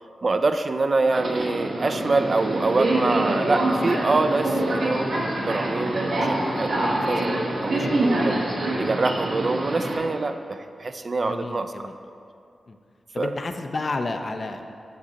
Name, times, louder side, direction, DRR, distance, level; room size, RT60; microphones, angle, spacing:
voice 1, 0.2-8.4 8.8-11.9 13.2-13.3, right 3 dB, 50° right, 8 dB, 0.3 m, -25 dB
Subway metro underground, 1.1-10.0, right 1 dB, 75° right, 1.0 m, -25 dB
voice 2, 11.2-11.9 12.7-12.8 13.1-14.7, left 3 dB, 55° left, 6 dB, 0.4 m, -31 dB
7.3 x 6.6 x 2.8 m, 2.5 s
cardioid pair, 50°, 0 cm